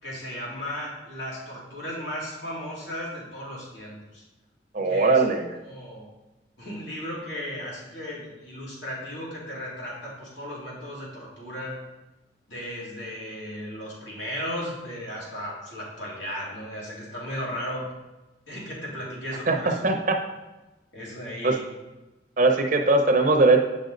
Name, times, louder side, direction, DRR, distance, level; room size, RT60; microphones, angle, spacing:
voice 1, 0.0-4.2 4.8-5.2 5.6-6.1 6.6-11.8 12.5-17.9 18.5-19.9 20.9-21.7, equal, 80° left, -5 dB, 2.6 m, -35 dB
voice 2, 4.7-5.5 19.5-19.6 19.8-20.2 21.4-21.6 22.4-23.6, right 3 dB, 45° right, 4 dB, 0.7 m, -20 dB
8.8 x 5.2 x 3.9 m, 1.1 s
head